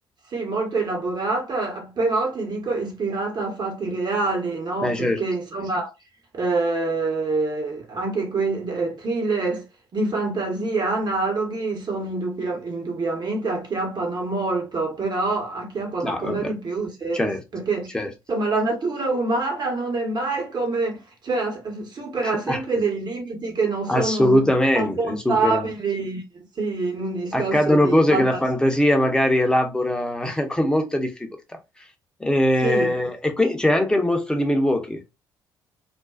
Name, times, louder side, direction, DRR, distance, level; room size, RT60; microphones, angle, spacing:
voice 1, 0.3-5.9 6.3-9.6 9.9-17.9 18.3-26.2 26.6-28.4 32.6-32.9, right 3 dB, 40° right, 1.2 m, -26 dB
voice 2, 4.8-5.2 16.0-16.5 17.1-17.4 17.9-18.1 22.5-22.6 23.9-25.7 27.3-31.3 32.2-35.0, left 1 dB, 5° left, 0.8 m, -21 dB
2.5 x 2.2 x 2.4 m
hypercardioid pair, 50°, 11 cm